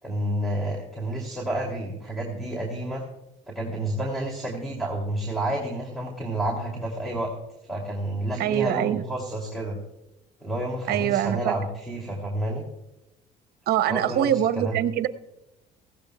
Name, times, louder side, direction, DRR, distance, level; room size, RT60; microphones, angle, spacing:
voice 1, 0.0-3.0 3.5-7.3 7.6-9.8 10.4-12.7 13.9-14.3 14.5-14.8, right 1 dB, ahead, 2.8 m, -30 dB
voice 2, 8.4-9.0 10.9-11.6 13.7-15.1, right 11 dB, 70° right, 0.8 m, -24 dB
19.5 x 16.5 x 2.3 m
cardioid pair, 110°, 17 cm